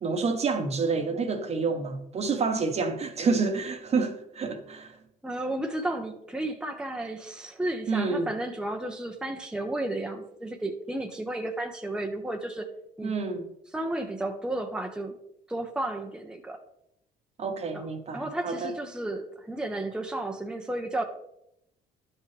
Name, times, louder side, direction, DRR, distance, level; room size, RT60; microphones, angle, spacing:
voice 1, 0.0-5.0 7.9-8.3 13.0-13.5 17.4-18.7, right 4 dB, 40° right, 1.0 m, -28 dB
voice 2, 5.2-12.7 13.0-13.1 13.7-15.1 15.5-16.6 17.7-17.9 18.1-21.0, right 1 dB, 5° right, 0.8 m, -33 dB
11.5 x 5.8 x 3.3 m
cardioid pair, 110°, 17 cm